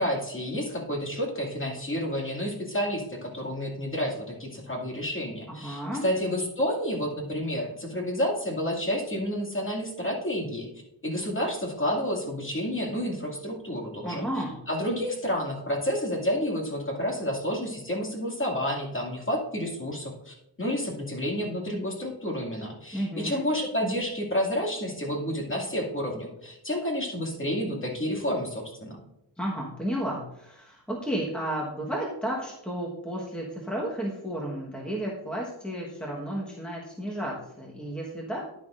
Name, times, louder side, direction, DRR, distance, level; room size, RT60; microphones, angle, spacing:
voice 1, 0.0-10.7 11.0-14.2 14.7-29.0, equal, 25° left, -1 dB, 2.2 m, -30 dB
voice 2, 5.6-6.0 14.0-14.6 22.9-23.5 29.4-38.4, right 1 dB, ahead, -3 dB, 1.3 m, -32 dB
10.5 x 10.5 x 2.5 m, 0.85 s
wide cardioid pair, 150°, 47 cm